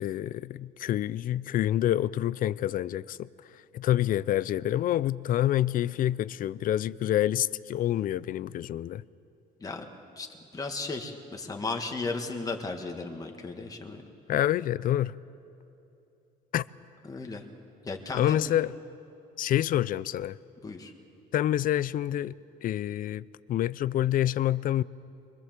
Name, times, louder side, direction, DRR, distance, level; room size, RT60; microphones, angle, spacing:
voice 1, 0.0-3.3 3.7-9.0 14.3-15.2 16.5-16.7 18.1-18.7 19.4-20.4 21.3-22.3 22.6-24.8, left 12 dB, 55° left, 0.5 m, -27 dB
voice 2, 10.5-14.0 17.1-17.4 17.8-18.5 20.6-20.9, left 3 dB, 20° left, 1.7 m, -35 dB
23.5 x 22.5 x 7.5 m
cardioid pair, 110°, 17 cm